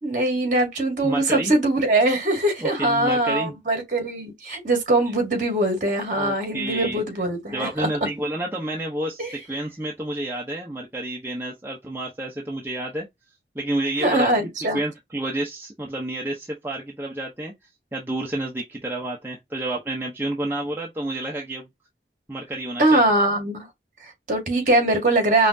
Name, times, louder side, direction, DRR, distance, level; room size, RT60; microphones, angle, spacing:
voice 1, 0.0-7.7 9.2-9.3 14.0-14.8 22.8-23.7 24.0-25.5, right 1 dB, 45° right, 2.0 m, -22 dB
voice 2, 1.0-1.5 2.6-3.6 6.1-7.0 7.5-13.1 13.5-17.5 17.9-21.7 22.3-23.0, right 1 dB, 15° right, 0.8 m, -30 dB
5.5 x 2.0 x 2.7 m
head